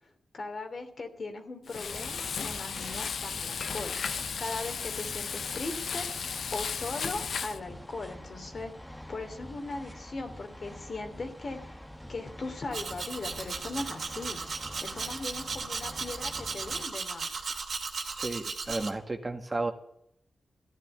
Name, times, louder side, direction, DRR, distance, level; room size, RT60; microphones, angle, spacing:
voice 1, 0.3-3.9 4.4-6.1 6.5-8.7 9.1-11.7 12.1-14.4 14.8-17.5, left 3 dB, 50° left, 5 dB, 3.1 m, -39 dB
Frying (food), 1.7-7.6, left 6 dB, 75° left, 0.7 m, -35 dB
sound 1, 1.9-16.8, equal, 10° left, 1.6 m, -46 dB
Domestic sounds home sounds, 12.7-18.9, right 4 dB, 60° right, 2.4 m, -36 dB
voice 2, 18.1-19.7, right 2 dB, 25° right, 5 dB, 1.9 m, -33 dB
14.5 x 11.0 x 9.0 m, 0.73 s
cardioid pair, 90°, 0 cm